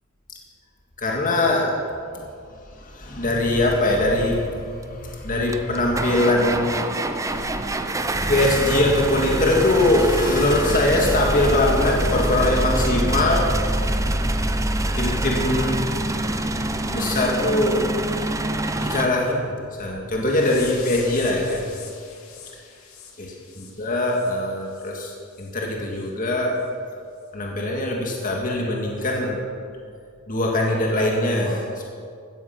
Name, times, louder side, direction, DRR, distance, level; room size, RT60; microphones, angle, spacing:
voice 1, 1.0-1.8 2.7-14.3 14.9-15.8 16.9-17.9 18.8-21.7 23.8-26.6 27.3-29.4 30.3-31.9, left 1 dB, 40° left, -1 dB, 2.0 m, -22 dB
sound 1, 4.8-4.9 5.5-19.1, right 1 dB, 15° right, 0.7 m, -25 dB
sound 2, 20.2-24.9 25.3-25.5 25.9-26.1 26.6-26.7 27.2-27.3, left 6 dB, 90° left, 2.5 m, -43 dB
16.0 x 13.5 x 5.9 m, 2.3 s
head